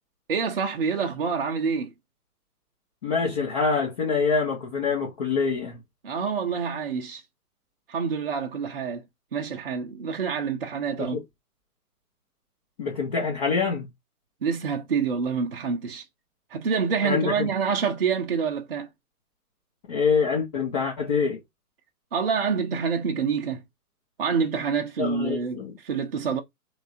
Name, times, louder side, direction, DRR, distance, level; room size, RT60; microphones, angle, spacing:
voice 1, 0.3-1.9 6.0-7.2 7.9-9.0 9.3-11.2 14.4-16.0 16.5-18.9 22.1-23.6 24.2-26.4, right 6 dB, 40° right, 0.5 m, -27 dB
voice 2, 3.0-5.8 11.0-11.2 12.8-13.9 17.0-17.5 19.9-21.4 25.0-25.8, left 5 dB, 25° left, 0.8 m, -25 dB
3.3 x 3.2 x 2.5 m
figure-of-eight pair, 130°, 47 cm